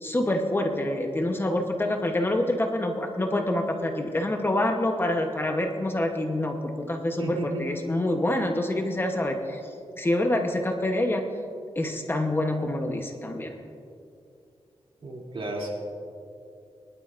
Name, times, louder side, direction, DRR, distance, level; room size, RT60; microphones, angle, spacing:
voice 1, 0.0-9.7 10.0-11.3 11.7-13.5, left 1 dB, 20° left, 3 dB, 0.9 m, -26 dB
voice 2, 7.2-7.6 15.0-15.7, right 1 dB, 60° right, -3 dB, 2.9 m, -33 dB
21.5 x 12.0 x 2.5 m, 2.5 s
wide cardioid pair, 130°, 10 cm